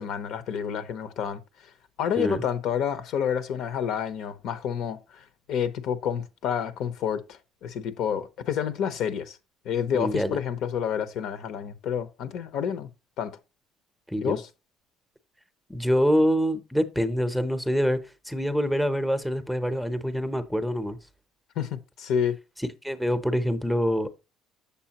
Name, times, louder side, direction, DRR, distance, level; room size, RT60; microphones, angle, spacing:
voice 1, 0.0-1.4 2.0-9.4 9.6-12.9 13.2-13.4 14.2-14.5 21.6-22.3, left 8 dB, 70° left, 0.9 m, -29 dB
voice 2, 9.9-10.4 14.1-14.4 15.7-21.0 22.8-24.1, equal, ahead, 0.7 m, -25 dB
8.2 x 7.0 x 2.9 m
cardioid pair, 125°, 0 cm